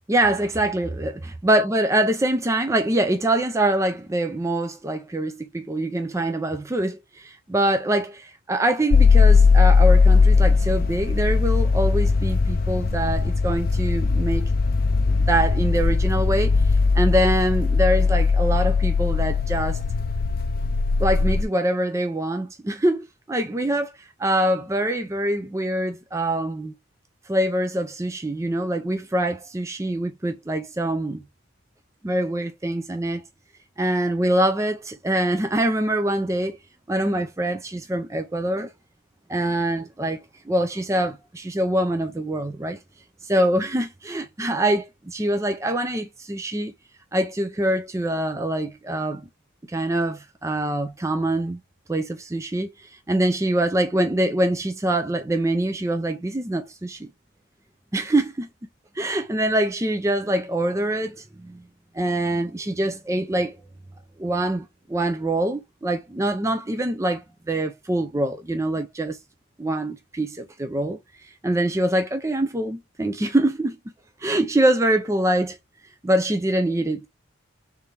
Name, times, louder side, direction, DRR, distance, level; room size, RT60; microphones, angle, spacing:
voice 1, 0.1-1.1 1.4-14.5 15.1-19.8 21.0-26.7 27.3-31.2 32.0-33.2 33.8-36.6 36.9-38.7 39.3-42.8 43.2-46.7 47.1-49.3 49.7-51.6 51.9-57.1 57.9-58.5 59.0-61.6 61.9-63.6 64.2-69.2 69.6-73.8 74.2-75.6 76.0-77.1, right 1 dB, 15° right, 0.4 m, -24 dB
sound 1, 8.9-21.4, left 4 dB, 45° left, 0.4 m, -19 dB
3.5 x 3.3 x 4.1 m
head